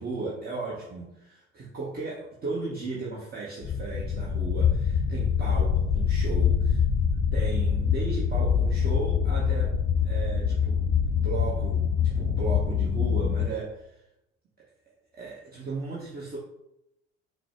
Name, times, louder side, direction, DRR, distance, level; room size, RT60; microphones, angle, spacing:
voice 1, 0.0-6.8 7.3-14.0 15.1-16.4, right 3 dB, 25° right, -5 dB, 0.9 m, -36 dB
sound 1, 3.6-13.5, left 7 dB, 25° left, 1.3 m, -25 dB
4.3 x 2.1 x 4.4 m, 0.87 s
figure-of-eight pair, 60°, 36 cm